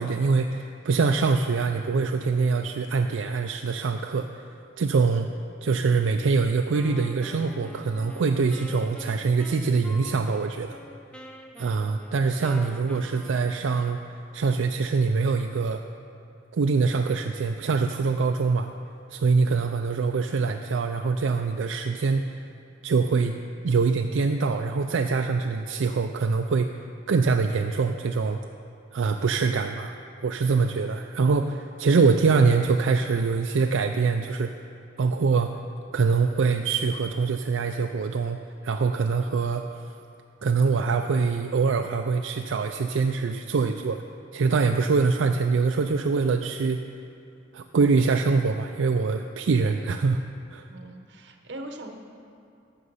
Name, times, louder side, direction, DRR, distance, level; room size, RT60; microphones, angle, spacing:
voice 1, 0.0-4.5 4.8-5.3 5.6-10.8 11.6-14.0 14.3-15.8 16.5-18.7 19.1-22.4 22.8-23.3 23.6-26.7 27.1-28.4 28.9-29.9 30.2-34.5 35.0-35.5 35.9-38.4 38.6-39.6 40.4-44.0 44.3-46.8 47.5-50.2 50.5-50.7, right 4 dB, 85° right, 5 dB, 0.4 m, -24 dB
Wind instrument woodwind instrument, 6.7-13.9, left 1 dB, 5° left, 0.5 m, -46 dB
Piano, 6.8-9.6, left 1 dB, 20° left, 2.0 m, -49 dB
voice 2, 50.7-51.9, right 1 dB, 65° right, 4 dB, 1.0 m, -40 dB
12.5 x 7.7 x 5.5 m, 2.6 s
head